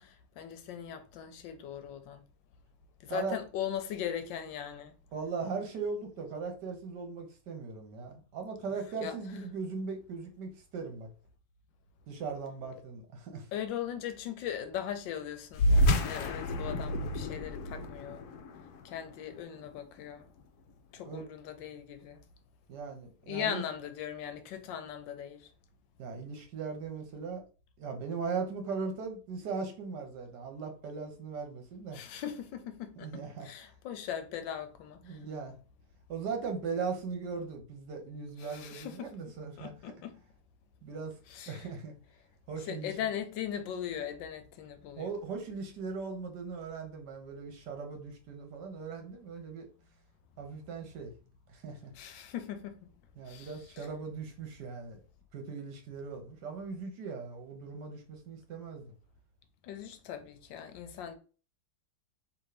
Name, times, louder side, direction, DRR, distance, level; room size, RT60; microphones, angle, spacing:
voice 1, 0.0-2.2 3.0-4.9 9.0-9.1 13.5-15.7 16.0-18.4 18.8-20.3 20.9-22.2 23.3-25.5 31.9-35.2 38.4-39.1 39.6-40.2 41.3-41.7 42.7-45.1 52.0-52.9 53.3-53.9 59.6-61.1, left 9 dB, 90° left, 1.4 m, -39 dB
voice 2, 5.1-11.1 12.1-13.5 21.0-21.3 22.7-23.6 26.0-27.4 27.8-32.0 33.0-33.5 35.0-35.5 36.1-39.9 40.8-41.1 41.5-41.9 42.5-42.9 45.0-49.7 50.4-51.1 51.5-51.9 53.2-55.0 55.3-58.9, right 5 dB, 70° right, 1.5 m, -39 dB
sound 1, 15.5-20.4, equal, 70° left, 1.1 m, -30 dB
3.7 x 2.9 x 4.8 m
omnidirectional pair, 1.9 m